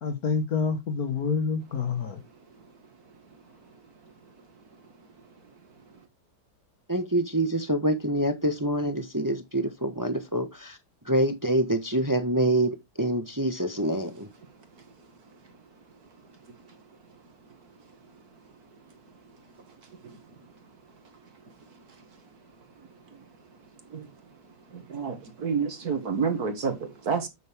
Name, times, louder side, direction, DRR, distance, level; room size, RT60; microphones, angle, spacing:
voice 1, 0.0-2.2, left 5 dB, 60° left, 1.9 m, -27 dB
voice 2, 6.9-10.8 11.0-14.3, right 1 dB, 15° right, 1.0 m, -26 dB
voice 3, 24.9-27.3, right 5 dB, 65° right, 2.3 m, -28 dB
9.2 x 6.5 x 3.5 m
omnidirectional pair, 1.8 m